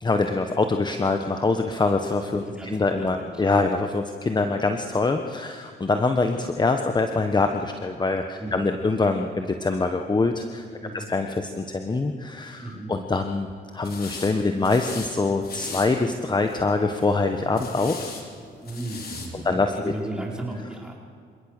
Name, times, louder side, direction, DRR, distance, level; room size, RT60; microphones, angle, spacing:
voice 1, 0.0-10.6 10.9-13.5 13.7-18.1 19.3-19.9, left 3 dB, 20° left, 6 dB, 1.2 m, -24 dB
voice 2, 2.4-3.4 8.4-8.7 10.8-11.0 12.6-12.9 18.6-20.9, right 2 dB, 5° right, -2 dB, 4.9 m, -35 dB
sound 1, 13.8-14.3 14.6-15.1 15.4-15.9 16.4-16.8 17.5-18.2 18.6-19.3, left 4 dB, 50° left, 4.4 m, -37 dB
27.5 x 17.5 x 6.7 m, 2.3 s
cardioid pair, 90°, 20 cm